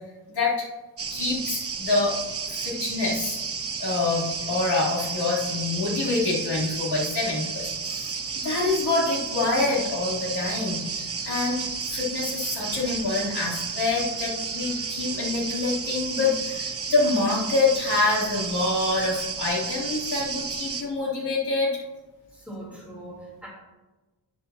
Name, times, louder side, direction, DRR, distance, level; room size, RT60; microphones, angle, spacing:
voice 1, 0.3-0.7 1.1-2.2 2.5-3.4 3.8-11.6 11.9-21.8, left 3 dB, 75° left, -5 dB, 3.7 m, -26 dB
sound 1, 1.0-20.8, right 5 dB, 35° right, 1.1 m, -32 dB
voice 2, 22.3-23.5, right 1 dB, 5° right, -6 dB, 3.7 m, -41 dB
12.0 x 9.7 x 3.0 m, 1.2 s
wide cardioid pair, 140°, 39 cm